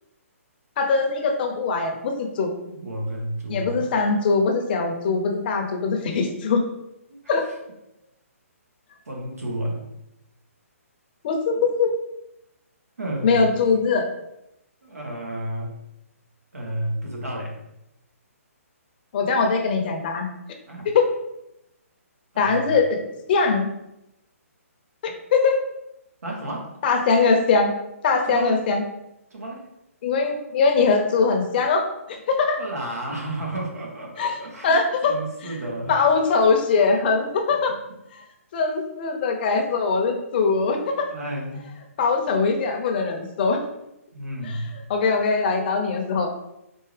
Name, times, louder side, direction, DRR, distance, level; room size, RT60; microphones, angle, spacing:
voice 1, 0.8-2.5 3.5-6.6 7.3-7.4 11.2-11.9 13.2-14.1 19.1-20.3 20.9-21.1 22.4-23.7 25.0-25.6 26.8-27.7 28.0-28.8 30.0-32.6 34.2-34.4 34.6-35.1 35.9-37.7 38.1-38.2 38.5-41.1 42.0-43.6 44.4-44.6 44.9-46.3, left 4 dB, 40° left, 3 dB, 0.6 m, -21 dB
voice 2, 2.6-3.8 7.1-7.2 9.1-9.8 13.0-13.5 14.8-15.7 16.5-17.6 20.7-20.9 22.3-22.7 26.2-26.7 28.2-28.6 29.3-29.6 32.6-34.8 35.0-35.9 36.7-37.0 40.3-41.6 44.1-44.7, right 1 dB, 90° right, -1 dB, 1.4 m, -32 dB
4.5 x 2.7 x 3.3 m, 0.87 s
hypercardioid pair, 150°, 8 cm